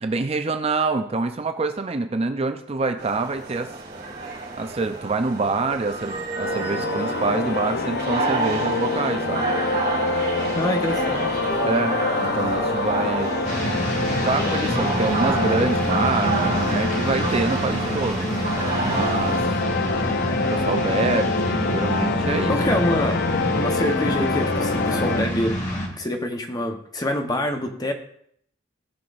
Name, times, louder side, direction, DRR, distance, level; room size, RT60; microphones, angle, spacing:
voice 1, 0.0-3.7 4.6-9.5 10.6-10.7 11.7-13.3 14.2-18.3 18.8-19.5 20.2-22.6, right 3 dB, 30° right, 7 dB, 0.5 m, -26 dB
sound 1, 3.0-19.4, right 3 dB, 50° right, 3.4 m, -29 dB
sound 2, 6.4-25.2, left 3 dB, 55° left, 0.6 m, -26 dB
voice 2, 10.6-11.7 19.3-19.4 22.5-23.2 23.6-25.7 26.0-27.9, left 1 dB, 20° left, 4 dB, 0.9 m, -26 dB
sound 3, 13.4-25.9, equal, 40° left, 1.8 m, -27 dB
17.5 x 6.0 x 2.5 m, 0.67 s
head